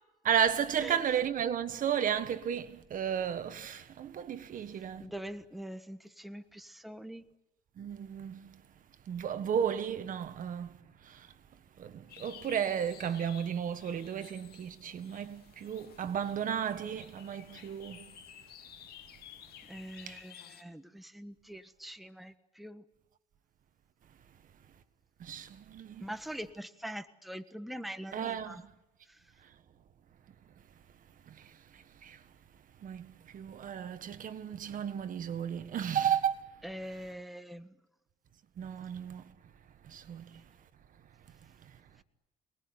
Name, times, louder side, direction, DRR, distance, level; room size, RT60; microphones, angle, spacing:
voice 1, 0.2-5.1 7.8-8.4 9.1-10.7 11.8-18.0 20.1-20.2 25.2-26.0 28.1-28.6 32.0-32.2 32.8-33.1 33.3-36.4 38.6-39.2 39.9-40.2, right 8 dB, 55° right, 1.5 m, -33 dB
voice 2, 5.0-7.2 19.7-22.8 26.0-28.6 36.6-37.7, equal, ahead, 1.4 m, -43 dB
sound 1, 12.1-20.6, left 10 dB, 65° left, 2.4 m, -54 dB
27.5 x 19.5 x 9.6 m
cardioid pair, 110°, 17 cm